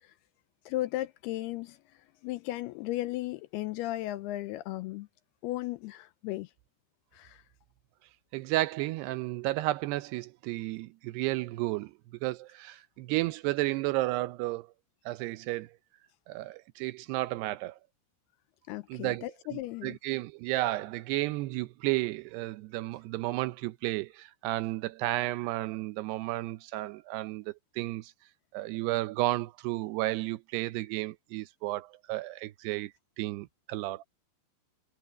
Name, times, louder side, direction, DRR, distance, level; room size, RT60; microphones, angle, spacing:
voice 1, 0.7-1.8 2.2-5.1 5.4-6.5 7.1-7.4 18.7-20.0, left 16 dB, 80° left, 2.4 m, -35 dB
voice 2, 8.3-11.9 12.2-14.7 15.1-15.8 16.3-17.8 18.9-28.1 28.5-32.9 33.2-34.0, right 18 dB, 80° right, 2.6 m, -32 dB
omnidirectional pair, 5.0 m